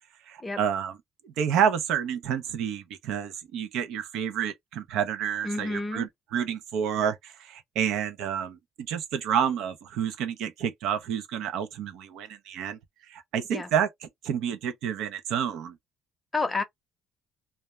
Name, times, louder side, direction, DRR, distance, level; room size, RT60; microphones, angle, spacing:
voice 1, 0.3-1.0 1.2-8.6 8.9-12.8 13.1-13.9 14.2-15.8, right 8 dB, 75° right, 0.5 m, -29 dB
voice 2, 5.4-6.1 13.5-13.7 16.3-16.6, left 3 dB, 15° left, 0.7 m, -30 dB
2.3 x 2.1 x 3.0 m
cardioid pair, 120°, 0 cm